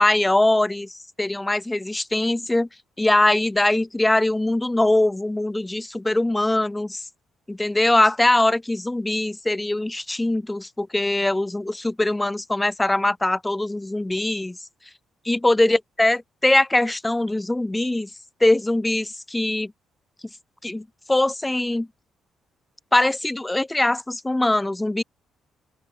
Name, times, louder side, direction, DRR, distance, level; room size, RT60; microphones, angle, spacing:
voice 1, 0.0-2.7 3.0-7.0 7.5-14.6 15.3-18.1 18.4-19.7 20.6-21.9 22.9-25.0, left 1 dB, 10° left, 0.6 m, -22 dB
open air
cardioid pair, 90°, 0 cm